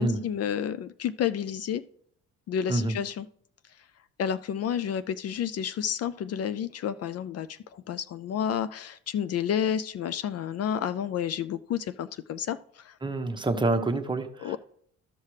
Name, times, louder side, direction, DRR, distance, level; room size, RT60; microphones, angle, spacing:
voice 1, 0.0-1.8 2.5-3.2 4.2-13.0 14.4-14.6, left 9 dB, 55° left, 13 dB, 0.4 m, -30 dB
voice 2, 13.0-14.5, right 2 dB, 15° right, 5 dB, 1.0 m, -27 dB
13.5 x 5.6 x 3.2 m, 0.64 s
cardioid pair, 90°, 30 cm